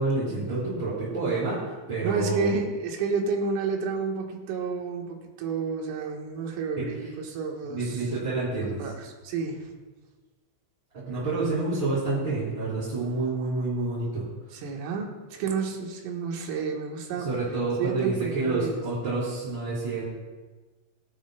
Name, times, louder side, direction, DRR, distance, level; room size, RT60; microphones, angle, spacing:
voice 1, 0.0-2.5 6.8-6.9 7.7-8.8 10.9-14.2 17.2-20.0, right 3 dB, 25° right, -13 dB, 4.2 m, -28 dB
voice 2, 2.0-8.1 8.6-9.8 14.5-17.3 17.8-18.8, right 5 dB, 85° right, 1 dB, 3.9 m, -30 dB
25.0 x 8.5 x 2.3 m, 1.3 s
omnidirectional pair, 5.6 m